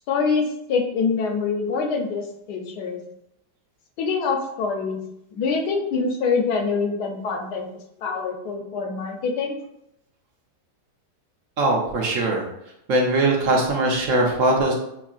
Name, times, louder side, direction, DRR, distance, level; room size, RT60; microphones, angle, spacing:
voice 1, 0.1-3.0 4.0-5.0 5.3-7.7 8.0-9.6, left 5 dB, 75° left, 3 dB, 1.2 m, -25 dB
voice 2, 11.6-12.5 12.9-14.7, right 2 dB, 60° right, -1 dB, 0.9 m, -20 dB
6.1 x 2.8 x 2.4 m, 0.80 s
omnidirectional pair, 1.8 m